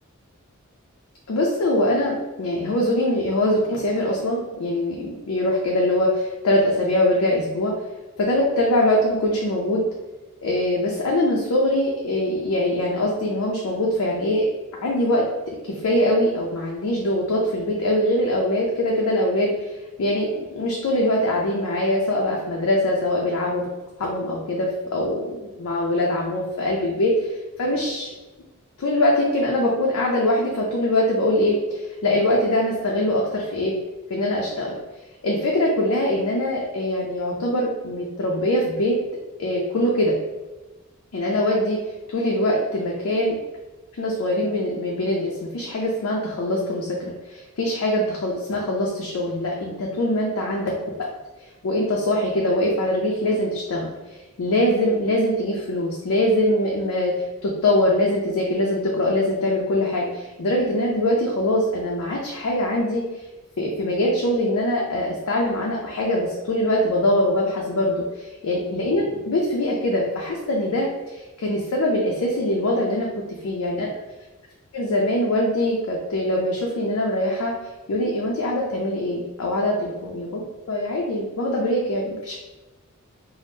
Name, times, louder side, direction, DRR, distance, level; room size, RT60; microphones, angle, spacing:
voice 1, 1.3-7.7 8.2-9.8 10.4-14.4 14.8-23.6 24.0-27.3 27.6-28.1 28.8-33.7 34.1-34.7 35.2-39.0 39.4-40.2 41.1-41.8 42.1-43.4 44.0-51.1 51.6-53.9 54.4-57.1 57.4-63.0 63.6-73.1 73.4-73.9 74.7-77.5 77.9-82.4, left 1 dB, 70° left, -2 dB, 0.5 m, -23 dB
2.6 x 2.0 x 3.4 m, 1.1 s
head